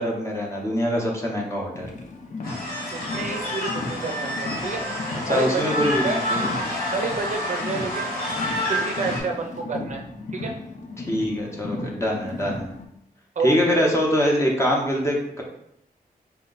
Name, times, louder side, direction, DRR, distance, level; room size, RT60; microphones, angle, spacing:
voice 1, 0.0-1.9 5.3-6.5 11.0-12.7 13.4-15.4, equal, 15° left, -1 dB, 0.7 m, -24 dB
Car, 1.7-12.8, left 2 dB, 50° left, 0.5 m, -35 dB
sound 1, 2.4-9.2, left 1 dB, 65° left, 1.2 m, -29 dB
voice 2, 2.9-4.8 5.3-5.8 6.0-6.2 6.9-8.2 8.7-10.0 10.3-10.5 13.4-13.8, right 4 dB, 50° right, 2 dB, 0.5 m, -29 dB
4.4 x 2.2 x 3.8 m, 0.76 s
wide cardioid pair, 165°, 16 cm